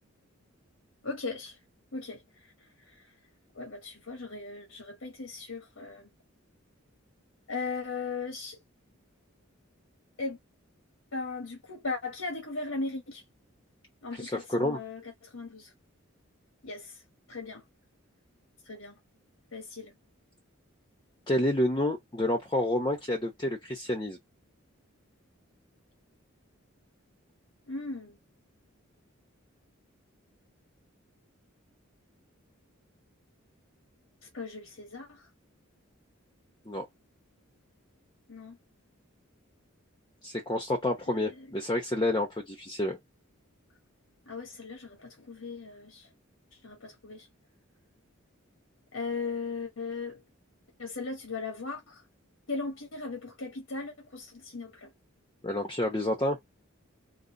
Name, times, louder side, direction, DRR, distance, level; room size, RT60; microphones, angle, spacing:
voice 1, 1.0-1.6 1.9-3.1 3.5-6.1 7.5-8.6 10.2-10.4 11.1-13.2 14.0-15.7 16.6-17.0 17.3-17.6 18.6-19.0 19.5-19.9 27.7-28.2 34.2-35.3 38.3-38.6 41.1-41.5 44.3-46.1 46.5-47.3 48.9-50.2 50.8-52.0 52.5-54.9, left 3 dB, 80° left, 1.2 m, -38 dB
voice 2, 14.2-14.8 21.3-24.2 36.7-36.9 40.2-43.0 55.4-56.4, left 1 dB, 20° left, 0.7 m, -29 dB
3.9 x 2.7 x 2.7 m
head